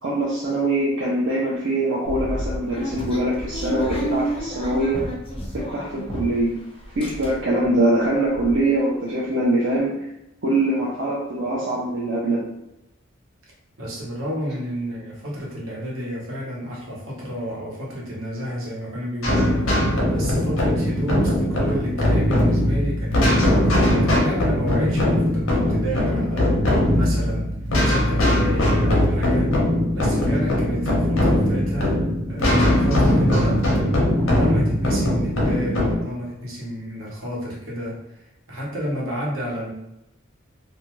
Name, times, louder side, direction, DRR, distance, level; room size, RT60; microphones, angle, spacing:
voice 1, 0.0-5.0 5.5-6.6 7.0-10.0 10.4-12.4, right 1 dB, 60° right, -6 dB, 0.5 m, -23 dB
sound 1, 2.1-6.5 6.8-7.7 8.1-8.2 8.3-8.6, right 1 dB, 25° left, 0.5 m, -31 dB
voice 2, 13.8-19.8 20.1-27.5 27.8-29.5 29.9-32.0 32.3-33.6 34.2-39.7, equal, 80° right, -4 dB, 1.0 m, -30 dB
sound 2, 19.2-35.9, left 1 dB, 80° left, 0.8 m, -20 dB
2.6 x 2.2 x 2.9 m, 0.88 s
head